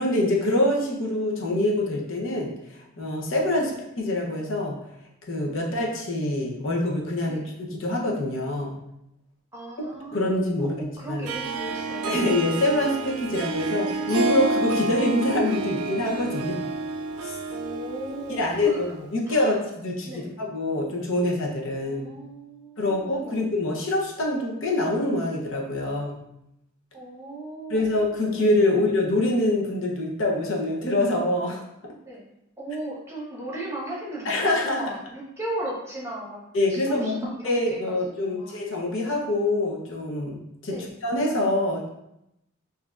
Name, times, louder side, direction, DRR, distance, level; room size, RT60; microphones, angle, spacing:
voice 1, 0.0-4.8 5.3-8.7 10.1-11.3 12.0-16.6 17.2-17.3 18.4-22.1 22.8-26.2 27.7-31.6 34.3-34.8 36.5-37.1 37.4-41.9, left 1 dB, 60° left, -2 dB, 0.7 m, -25 dB
voice 2, 9.5-12.2 17.5-18.9 19.3-19.6 20.0-20.3 21.8-23.4 26.9-27.9 32.0-32.2 32.6-36.4 36.7-38.6 40.7-40.9, right 1 dB, 15° right, -5 dB, 1.1 m, -37 dB
Harp, 11.2-19.0, right 2 dB, 80° right, 0.4 m, -29 dB
7.0 x 2.7 x 2.4 m, 0.84 s
head